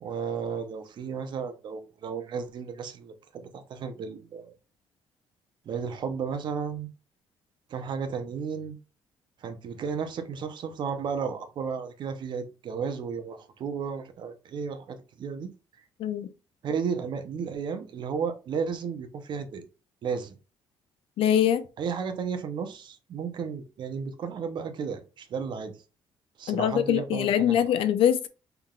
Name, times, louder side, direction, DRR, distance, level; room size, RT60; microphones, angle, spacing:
voice 1, 0.0-4.5 5.7-6.9 7.7-8.8 9.4-15.5 16.6-19.6 20.0-20.4 21.8-25.8 26.4-27.7, right 6 dB, 55° right, 0.8 m, -33 dB
voice 2, 21.2-21.6 26.5-28.3, left 10 dB, 75° left, 0.6 m, -23 dB
5.6 x 3.5 x 2.4 m
cardioid pair, 130°, 9 cm